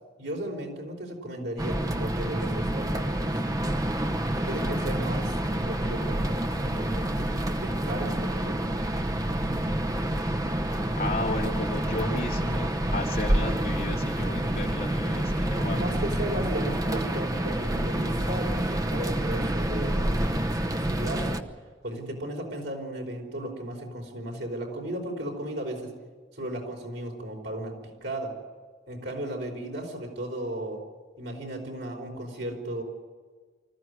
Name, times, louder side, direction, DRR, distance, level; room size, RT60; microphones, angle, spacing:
voice 1, 0.2-3.3 4.5-8.9 13.4-13.6 15.6-20.2 20.7-21.4 21.8-25.9 26.3-27.7 28.0-28.3 28.9-30.8 31.2-32.8, right 1 dB, 85° right, 1 dB, 4.9 m, -35 dB
sound 1, 1.6-21.4, right 1 dB, 20° right, 0.9 m, -28 dB
voice 2, 11.0-15.8, left 2 dB, 55° left, 0 dB, 2.5 m, -34 dB
25.0 x 14.5 x 9.7 m, 1.5 s
head